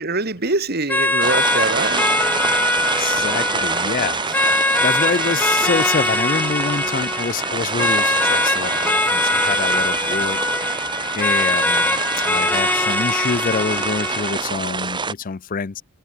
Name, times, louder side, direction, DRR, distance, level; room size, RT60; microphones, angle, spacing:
voice 1, 0.0-2.0, right 3 dB, 50° right, 2.8 m, -23 dB
sound 1, 0.9-14.5, left 2 dB, 10° left, 1.0 m, -22 dB
sound 2, 1.2-15.1, right 4 dB, 25° right, 1.5 m, -26 dB
voice 2, 2.9-4.4 4.8-10.8 11.1-12.0 12.3-15.8, left 5 dB, 40° left, 0.5 m, -26 dB
head